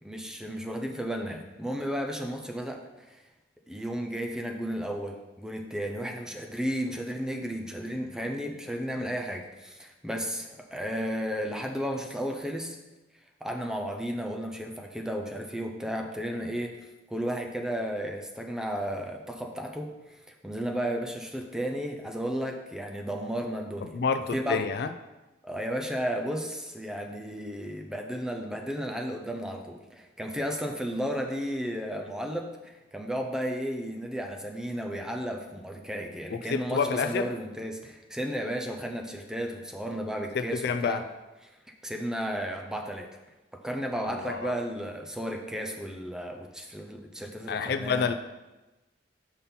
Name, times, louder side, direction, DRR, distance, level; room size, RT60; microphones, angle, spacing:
voice 1, 0.0-3.2 3.7-12.8 13.4-16.8 17.1-19.9 20.3-24.0 24.3-24.6 25.4-41.0 41.4-41.5 41.8-43.1 43.5-48.1, equal, 5° right, 2 dB, 0.5 m, -33 dB
voice 2, 23.9-24.9 36.3-37.3 40.3-41.0 44.0-44.5 47.5-48.1, left 5 dB, 55° left, 10 dB, 0.3 m, -28 dB
5.5 x 5.4 x 4.3 m, 1.1 s
head